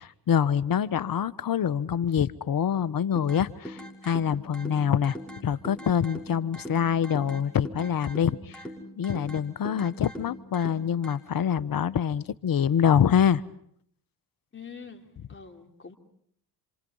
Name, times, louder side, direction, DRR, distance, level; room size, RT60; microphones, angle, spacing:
voice 1, 0.0-5.2 5.4-8.6 8.9-13.4, left 8 dB, 45° left, 16 dB, 1.2 m, -25 dB
sound 1, 3.1-11.1, equal, ahead, 6.5 m, -42 dB
voice 2, 14.5-15.9, left 6 dB, 25° left, 3 dB, 3.5 m, -45 dB
28.0 x 26.5 x 5.6 m, 0.66 s
supercardioid pair, 60°, 49 cm